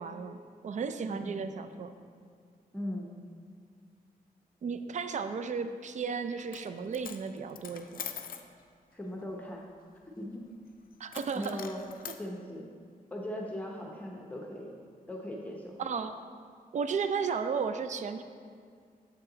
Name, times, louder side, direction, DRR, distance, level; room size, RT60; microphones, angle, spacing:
voice 1, 0.0-2.0 4.6-8.0 11.0-11.6 15.8-16.2 16.7-18.2, right 5 dB, 50° right, 9 dB, 0.4 m, -34 dB
voice 2, 2.7-3.2 8.9-9.7 10.2-10.4 11.3-11.8 12.2-12.7 13.1-14.8 15.1-15.8, left 1 dB, 10° left, -1 dB, 0.7 m, -39 dB
Coin (dropping), 6.4-6.7 6.9-8.5 11.1-12.2, left 8 dB, 70° left, 0.4 m, -43 dB
7.2 x 5.7 x 3.8 m, 2.1 s
wide cardioid pair, 105°, 15 cm